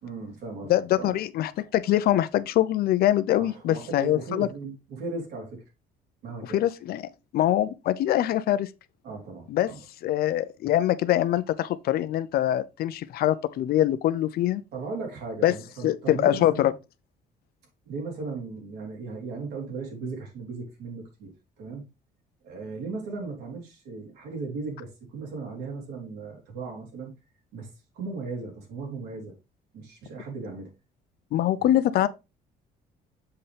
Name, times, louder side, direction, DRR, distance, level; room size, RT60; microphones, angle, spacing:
voice 1, 0.0-1.1 3.4-5.6 6.2-6.6 9.0-9.8 14.7-16.7 17.9-21.8 22.4-27.1 27.5-27.7 27.9-29.3 29.7-30.7 31.6-31.7, right 3 dB, 75° right, 3.4 m, -37 dB
voice 2, 0.7-4.5 6.5-7.0 7.3-8.7 9.5-9.7 10.0-14.6 15.4-15.5 15.8-16.7 31.3-32.1, left 13 dB, 65° left, 0.6 m, -23 dB
6.8 x 5.5 x 3.4 m
cardioid pair, 110°, 17 cm